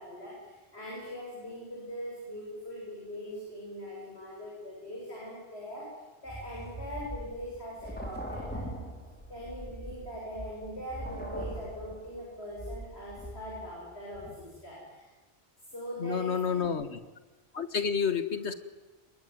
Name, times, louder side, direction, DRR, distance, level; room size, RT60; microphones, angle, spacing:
voice 1, 0.0-8.7 9.3-15.1 15.7-16.6, equal, 75° left, -4 dB, 8.1 m, -41 dB
sound 1, 6.3-13.8 14.1-14.3, right 1 dB, 10° left, 5.1 m, -41 dB
voice 2, 16.0-17.0 17.5-18.5, left 6 dB, 90° left, 11 dB, 1.9 m, -29 dB
27.0 x 22.0 x 9.4 m, 1.2 s
omnidirectional pair, 1.1 m